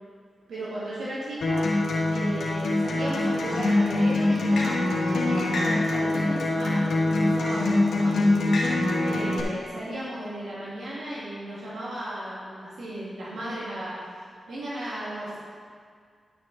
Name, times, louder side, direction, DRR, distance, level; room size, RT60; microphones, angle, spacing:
voice 1, 0.5-1.6 2.1-8.2 9.0-13.9 14.5-15.4, right 1 dB, 85° right, -9 dB, 2.7 m, -35 dB
Acoustic guitar, 1.4-9.4, left 2 dB, 85° left, 1.8 m, -24 dB
11.0 x 6.3 x 4.4 m, 2.1 s
cardioid pair, 50°, 0 cm